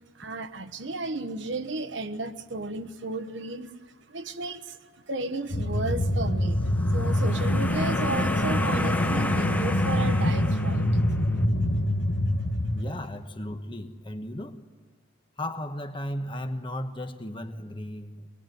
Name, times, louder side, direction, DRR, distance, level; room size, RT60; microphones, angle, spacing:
voice 1, 0.1-3.7 4.1-11.0, right 2 dB, 65° right, 1.2 m, -34 dB
sound 1, 5.5-12.8, left 1 dB, 70° left, 1.3 m, -25 dB
sound 2, 6.6-11.3, left 1 dB, 10° left, 0.7 m, -32 dB
voice 2, 12.7-14.6 15.4-18.3, left 1 dB, 25° left, 1.3 m, -35 dB
24.5 x 20.5 x 9.3 m
head